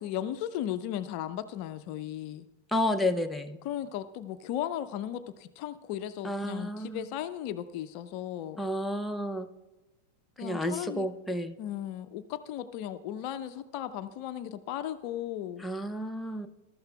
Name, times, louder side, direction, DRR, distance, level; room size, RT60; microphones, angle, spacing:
voice 1, 0.0-2.5 3.6-8.6 10.4-11.1 11.6-15.7, left 11 dB, 45° left, 12 dB, 0.5 m, -36 dB
voice 2, 2.7-3.6 6.2-7.0 8.6-9.5 10.4-11.6 15.6-16.5, left 1 dB, 5° left, 5 dB, 0.7 m, -31 dB
21.5 x 12.5 x 2.3 m, 1.1 s
figure-of-eight pair, 90°, 0 cm